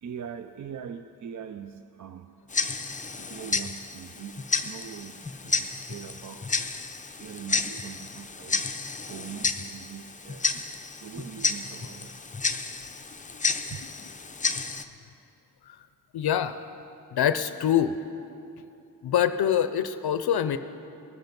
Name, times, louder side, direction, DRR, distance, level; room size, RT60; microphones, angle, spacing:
voice 1, 0.0-2.4 3.2-6.6 7.2-8.7 9.1-10.5 10.9-12.2 13.7-13.8, right 8 dB, 45° right, 10 dB, 0.4 m, -42 dB
Tick-tock, 2.5-14.8, left 4 dB, 20° left, 0.5 m, -31 dB
voice 2, 16.1-16.6 17.1-18.0 19.0-20.6, left 9 dB, 65° left, 11 dB, 0.5 m, -24 dB
19.0 x 8.1 x 5.2 m, 2.7 s
cardioid pair, 75°, 41 cm